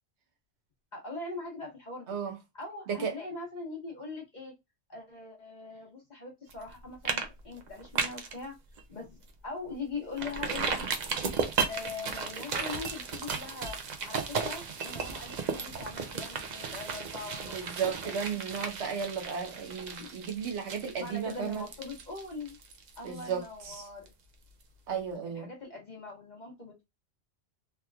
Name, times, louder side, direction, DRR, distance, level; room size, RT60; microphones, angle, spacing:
voice 1, 0.9-2.2 2.5-4.5 4.9-8.5 8.9-10.8 11.7-13.8 14.0-17.6 18.0-18.2 20.0-20.1 21.0-22.6 23.0-24.1 25.3-26.8, left 3 dB, 40° left, 1.2 m, -41 dB
sound 1, 6.5-6.7 7.1-7.3 7.6-8.3 8.8-8.9 9.3-9.4 10.2-23.7 24.1-24.2, right 5 dB, 50° right, 0.6 m, -35 dB
voice 2, 17.4-21.7 23.0-23.8 24.9-25.5, right 6 dB, 80° right, 1.1 m, -34 dB
3.4 x 2.8 x 2.2 m
omnidirectional pair, 1.1 m